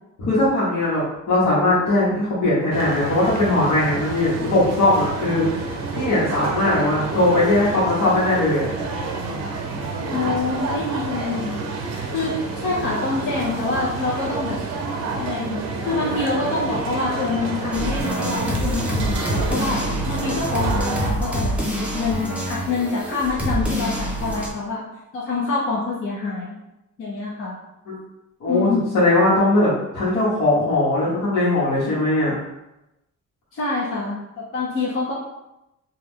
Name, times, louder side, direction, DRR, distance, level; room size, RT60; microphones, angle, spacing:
voice 1, 0.2-8.7 27.9-28.0 28.4-32.4, left 2 dB, 65° left, -10 dB, 1.1 m, -20 dB
sound 1, 2.7-21.1, right 3 dB, 55° right, 0.6 m, -29 dB
voice 2, 10.1-11.7 12.1-14.6 15.1-15.6 15.8-19.8 20.1-21.5 21.9-24.8 25.1-26.6 27.0-27.6 28.4-28.9 33.5-35.1, left 3 dB, 45° left, -5 dB, 0.6 m, -26 dB
sound 2, 17.7-24.5, right 1 dB, 5° right, 0.5 m, -26 dB
3.0 x 2.3 x 3.5 m, 0.92 s
wide cardioid pair, 175°, 31 cm